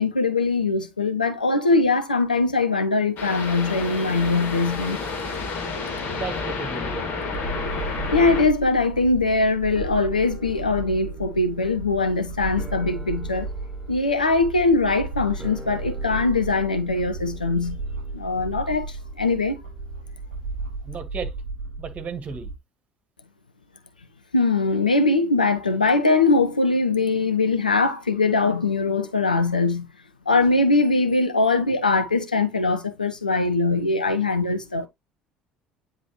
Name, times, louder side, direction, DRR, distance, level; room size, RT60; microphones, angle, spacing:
voice 1, 0.0-5.0 8.1-13.5 13.9-17.8 18.1-19.6 24.3-29.9 30.3-34.9, left 3 dB, 85° left, 0.8 m, -21 dB
sound 1, 3.2-8.4, left 4 dB, 50° left, 2.7 m, -30 dB
voice 2, 5.8-7.1 20.8-21.3 21.8-22.5, right 5 dB, 35° right, 1.8 m, -34 dB
sound 2, 7.3-22.6, right 3 dB, 75° right, 0.8 m, -34 dB
sound 3, 9.7-20.4 20.6-20.7, right 1 dB, 20° right, 4.6 m, -47 dB
9.6 x 4.0 x 3.0 m
figure-of-eight pair, 60°, 4 cm